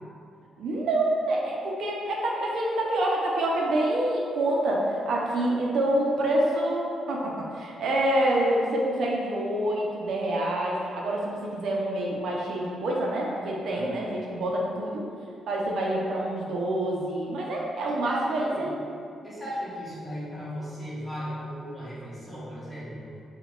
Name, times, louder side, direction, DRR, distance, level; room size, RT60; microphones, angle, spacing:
voice 1, 0.6-15.0 15.5-18.8, right 1 dB, 70° right, -3 dB, 0.4 m, -27 dB
voice 2, 18.0-18.7 19.2-23.1, equal, 5° left, -10 dB, 1.0 m, -36 dB
4.6 x 2.2 x 2.3 m, 2.4 s
cardioid pair, 115°, 0 cm